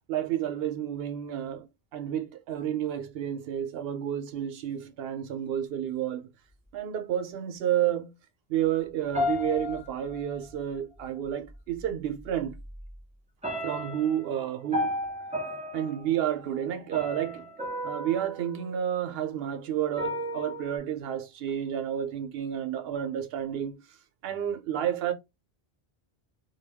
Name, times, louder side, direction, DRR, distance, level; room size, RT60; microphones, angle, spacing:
voice 1, 0.1-1.7 1.9-6.2 6.7-8.1 8.5-12.5 13.6-14.9 15.7-17.4 17.8-23.8 24.2-25.1, right 10 dB, 75° right, 0.8 m, -30 dB
sound 1, 9.1-10.6 11.8-11.9 12.4-12.9 13.4-19.3 20.0-20.8, left 1 dB, 10° right, 0.5 m, -34 dB
2.2 x 2.2 x 3.4 m
omnidirectional pair, 1.0 m